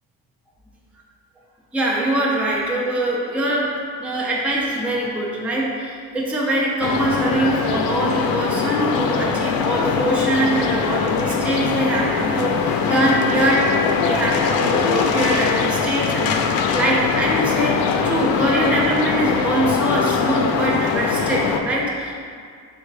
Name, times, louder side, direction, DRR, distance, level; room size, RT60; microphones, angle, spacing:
voice 1, 1.7-22.2, right 1 dB, 5° right, -4 dB, 0.3 m, -23 dB
sound 1, 6.8-21.6, left 6 dB, 75° left, 0.5 m, -22 dB
4.8 x 2.2 x 4.6 m, 2.1 s
cardioid pair, 165°, 36 cm